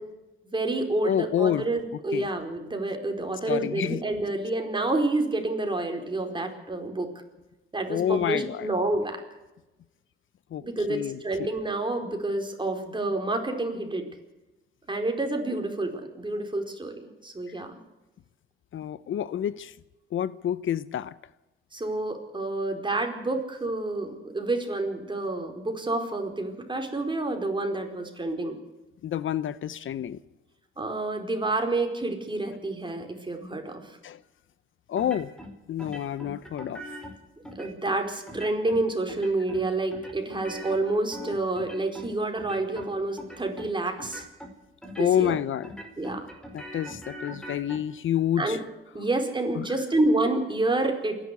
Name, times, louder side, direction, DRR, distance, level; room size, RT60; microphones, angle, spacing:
voice 1, 0.5-7.1 7.7-9.2 10.6-14.0 14.9-17.8 21.7-28.6 30.8-34.0 37.5-44.2 45.0-45.3 46.0-46.3 48.4-48.6 48.9-51.2, right 2 dB, 20° right, 3 dB, 4.7 m, -28 dB
voice 2, 1.0-1.7 2.1-2.3 3.5-4.0 7.9-8.7 10.5-11.5 18.7-19.7 20.1-21.1 29.0-30.2 34.0-34.2 34.9-35.3 35.7-36.8 45.0-45.7 46.5-48.6 49.6-49.7, left 10 dB, 70° left, 17 dB, 0.7 m, -28 dB
sound 1, 35.0-35.5 35.8-37.1 37.4-38.0 38.3-38.8 39.1-39.6 39.9-42.1 42.4-42.9 43.2-43.7 44.0-44.5 44.8-45.4 45.6-47.8, equal, 5° left, 4.8 m, -41 dB
27.5 x 11.5 x 8.3 m, 1.0 s
cardioid pair, 85°, 21 cm